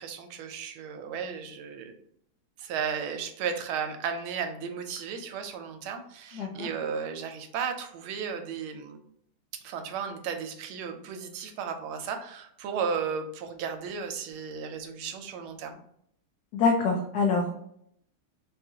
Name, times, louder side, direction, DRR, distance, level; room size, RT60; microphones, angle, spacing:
voice 1, 0.0-1.9 2.6-9.0 9.6-15.8, right 6 dB, 90° right, 6 dB, 1.4 m, -34 dB
voice 2, 6.4-6.7 16.5-17.5, left 4 dB, 85° left, 2 dB, 0.8 m, -25 dB
3.8 x 2.4 x 2.7 m, 0.70 s
omnidirectional pair, 2.2 m